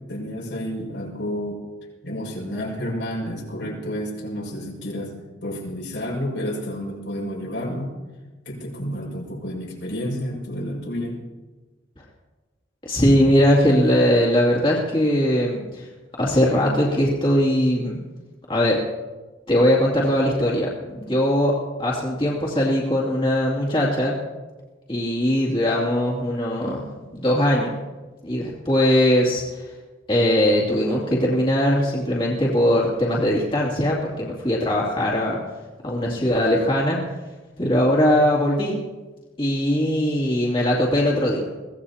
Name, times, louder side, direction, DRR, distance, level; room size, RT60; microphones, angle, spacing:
voice 1, 0.0-1.6 2.0-5.1 5.4-8.0 8.5-11.2, equal, 75° left, -2 dB, 6.0 m, -30 dB
voice 2, 12.8-15.9 16.2-18.0 18.5-18.8 19.5-21.5 21.8-24.1 24.9-27.7 28.2-29.7 30.1-35.4 35.8-37.0 37.6-38.8 39.4-41.5, equal, 25° left, -4 dB, 2.6 m, -20 dB
23.5 x 17.5 x 2.9 m, 1.2 s
head